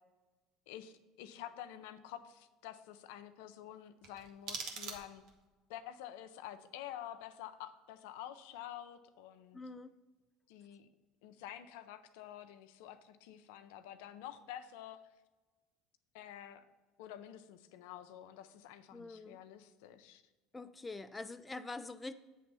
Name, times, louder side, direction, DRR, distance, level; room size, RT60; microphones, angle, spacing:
voice 1, 0.7-5.2 5.7-9.6 10.5-10.9 11.2-15.0 16.1-16.7 17.0-20.2, left 11 dB, 80° left, 10 dB, 0.5 m, -49 dB
sound 1, 4.0-5.5, right 5 dB, 60° right, 1.2 m, -44 dB
voice 2, 9.5-10.0 18.9-19.4 20.5-22.1, left 3 dB, 15° left, 10 dB, 0.4 m, -45 dB
8.4 x 3.5 x 5.4 m, 1.2 s
supercardioid pair, 90°, 0 cm